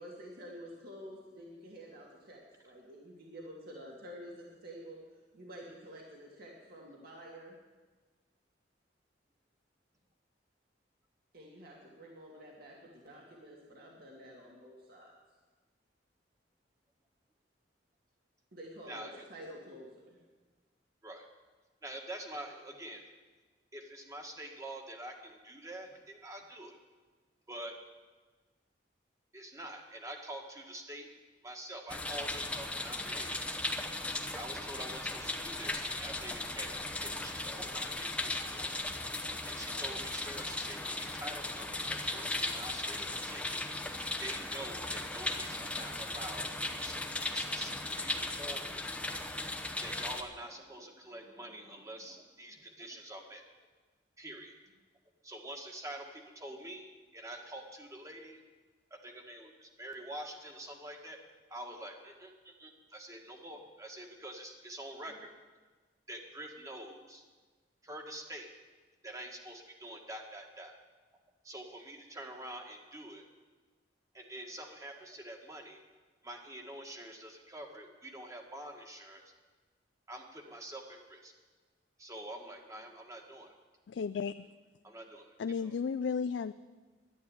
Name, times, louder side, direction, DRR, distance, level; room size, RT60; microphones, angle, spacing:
voice 1, 0.0-5.0 5.3-7.6 11.3-15.1 18.5-20.2, equal, 60° right, -2 dB, 2.3 m, -49 dB
voice 2, 18.8-19.2 21.0-21.2 21.8-23.0 23.7-26.8 27.5-27.8 29.3-31.1 31.4-33.6 34.3-38.8 39.4-47.0 47.3-48.9 49.8-53.4 54.2-54.6 55.2-58.4 58.9-61.2 61.5-65.3 66.1-67.3 67.8-68.5 69.0-70.7 71.4-73.2 74.1-75.8 76.2-79.3 80.1-81.3 82.0-83.6 84.8-85.4 85.6-85.7, right 1 dB, 20° right, 2 dB, 1.8 m, -46 dB
sound 1, 31.9-50.2, left 2 dB, 5° left, 0.9 m, -37 dB
voice 3, 83.9-84.5 85.4-86.5, left 6 dB, 80° left, 11 dB, 0.4 m, -34 dB
11.5 x 11.0 x 9.0 m, 1.3 s
head